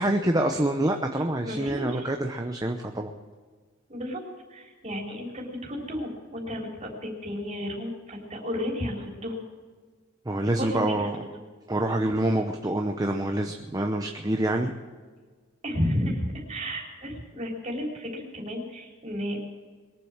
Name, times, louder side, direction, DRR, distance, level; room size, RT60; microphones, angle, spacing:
voice 1, 0.0-3.1 10.3-11.2 11.7-14.7, right 1 dB, 20° right, 4 dB, 0.8 m, -26 dB
voice 2, 1.4-2.1 3.9-4.2 4.5-9.4 10.6-11.3 15.6-19.4, equal, 35° right, -1 dB, 3.8 m, -32 dB
22.0 x 7.6 x 7.4 m, 1.5 s
head